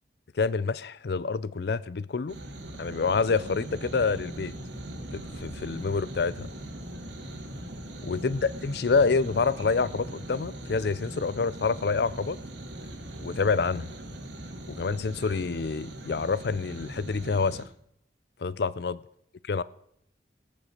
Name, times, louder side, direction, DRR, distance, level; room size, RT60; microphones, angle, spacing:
voice 1, 0.4-2.4 2.8-4.5 5.1-6.5 8.0-12.4 13.2-13.9 14.7-17.6 18.4-19.0 19.5-19.6, left 4 dB, 60° left, 0.5 m, -27 dB
sound 1, 2.3-17.6, right 1 dB, 75° right, 2.7 m, -40 dB
19.0 x 7.0 x 6.4 m
head